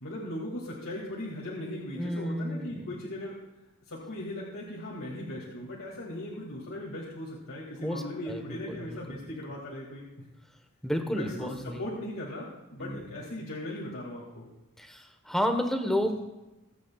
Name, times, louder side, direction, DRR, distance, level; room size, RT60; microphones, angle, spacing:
voice 1, 0.0-3.4 3.9-10.1 11.1-14.5, left 1 dB, 65° left, -5 dB, 2.3 m, -38 dB
voice 2, 2.0-2.9 7.8-9.3 10.8-11.8 12.8-13.0 14.8-16.1, equal, ahead, 5 dB, 1.1 m, -31 dB
23.0 x 8.5 x 2.4 m, 1.0 s
head